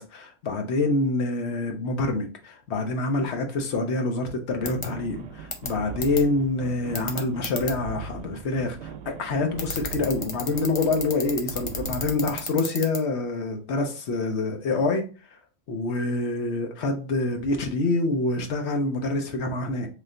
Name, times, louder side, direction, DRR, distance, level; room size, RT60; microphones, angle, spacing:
voice 1, 0.0-15.1 15.7-19.9, left 2 dB, 90° left, 4 dB, 1.1 m, -26 dB
sound 1, 4.6-12.5, right 5 dB, 90° right, 0.9 m, -40 dB
sound 2, 4.7-4.8 5.5-5.7 6.0-6.2 6.9-7.7 9.6-13.0, left 3 dB, 35° left, 0.6 m, -30 dB
3.3 x 2.9 x 3.7 m, 0.35 s
omnidirectional pair, 1.1 m